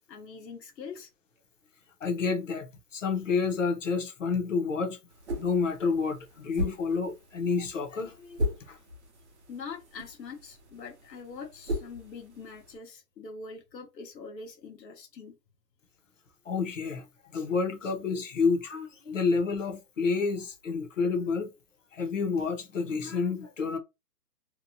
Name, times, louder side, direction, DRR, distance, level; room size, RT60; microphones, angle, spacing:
voice 1, 0.1-1.1 9.5-15.4, left 5 dB, 80° left, 1.0 m, -43 dB
voice 2, 2.0-2.6 2.9-5.0 5.4-8.8 16.5-21.5 21.9-23.8, left 4 dB, 50° left, 0.7 m, -29 dB
sound 1, 5.1-12.8, left 1 dB, 45° right, 0.7 m, -38 dB
2.8 x 2.1 x 2.6 m
hypercardioid pair, 175°, 49 cm